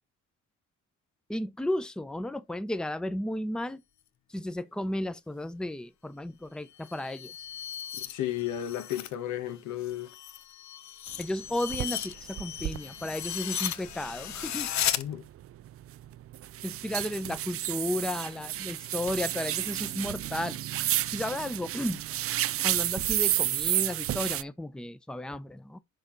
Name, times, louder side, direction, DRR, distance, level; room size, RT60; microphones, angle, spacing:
voice 1, 1.3-3.8 4.3-7.3 11.2-14.7 16.6-22.0 22.6-25.8, left 1 dB, 5° left, 0.7 m, -34 dB
sound 1, 6.7-9.1 9.5-15.0, left 10 dB, 65° left, 1.0 m, -36 dB
voice 2, 7.9-10.1 15.0-15.2, left 12 dB, 85° left, 1.4 m, -33 dB
sound 2, 11.2-11.3 11.7-11.9 12.4-12.8 13.2-13.3 13.9-14.0 14.2-24.4, right 13 dB, 50° right, 0.4 m, -31 dB
6.8 x 5.9 x 3.9 m
cardioid pair, 90°, 30 cm